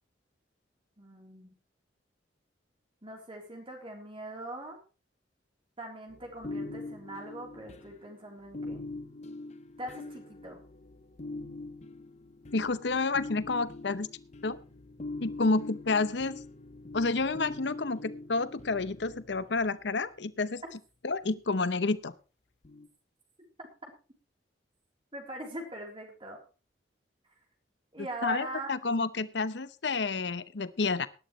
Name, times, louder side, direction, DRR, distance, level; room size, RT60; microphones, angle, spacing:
voice 1, 1.0-1.6 3.0-4.8 5.8-8.8 9.8-10.6 23.6-23.7 25.1-26.4 27.9-28.7, right 1 dB, 30° right, 1 dB, 3.5 m, -41 dB
sound 1, 6.1-19.9 22.6-22.9, left 2 dB, 40° left, 0.8 m, -43 dB
voice 2, 12.5-14.1 14.4-14.6 15.2-16.4 16.9-20.6 21.0-22.1 28.2-31.1, left 3 dB, 70° left, 15 dB, 0.8 m, -29 dB
18.0 x 12.0 x 3.2 m, 0.33 s
head